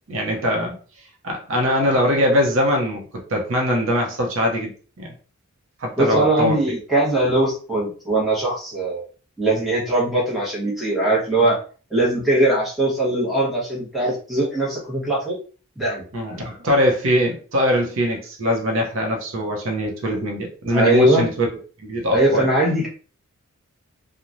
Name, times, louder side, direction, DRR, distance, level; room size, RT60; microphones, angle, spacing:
voice 1, 0.1-0.8 1.2-3.0 3.3-5.1 5.8-6.6 16.1-21.5 21.8-22.5, equal, 60° right, 1 dB, 0.7 m, -22 dB
voice 2, 6.0-9.1 9.4-11.6 11.9-15.4 15.8-16.0 20.7-21.2 22.1-22.9, right 1 dB, ahead, -6 dB, 1.0 m, -20 dB
3.0 x 2.1 x 2.5 m, 0.39 s
head